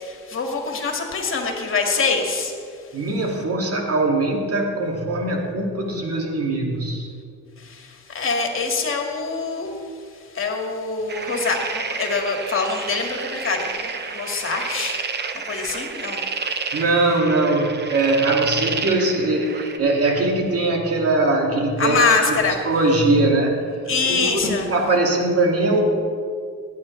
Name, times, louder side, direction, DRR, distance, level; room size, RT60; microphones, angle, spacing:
voice 1, 0.0-2.5 7.6-7.9 8.1-9.7 10.3-15.0 15.5-16.2 21.8-22.6 23.9-24.7, left 4 dB, 45° left, 2 dB, 2.0 m, -24 dB
voice 2, 2.9-7.1 16.7-22.4 22.6-23.7 24.0-25.8, right 2 dB, 50° right, 1 dB, 2.2 m, -21 dB
sound 1, 11.1-19.8, right 5 dB, 35° right, 0.9 m, -30 dB
16.5 x 9.4 x 3.2 m, 2.2 s
cardioid pair, 90°, 30 cm